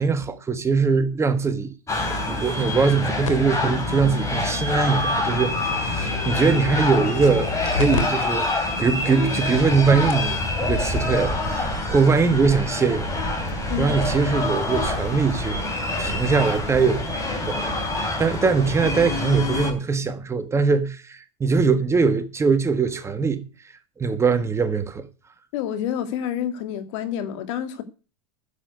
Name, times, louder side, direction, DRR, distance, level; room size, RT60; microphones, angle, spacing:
voice 1, 0.0-13.1 13.8-15.6 16.0-17.0 17.4-23.4 24.0-25.1, right 5 dB, 15° right, 1.5 m, -22 dB
sound 1, 1.9-19.7, left 2 dB, 20° left, 4.2 m, -26 dB
sound 2, 3.2-8.0 8.4-8.5 9.1-9.2 9.8-9.9 10.1-10.4 11.6-11.7, left 7 dB, 85° left, 2.9 m, -32 dB
voice 2, 25.5-27.8, left 9 dB, 65° left, 2.1 m, -28 dB
10.0 x 7.5 x 9.3 m
supercardioid pair, 125°, 16 cm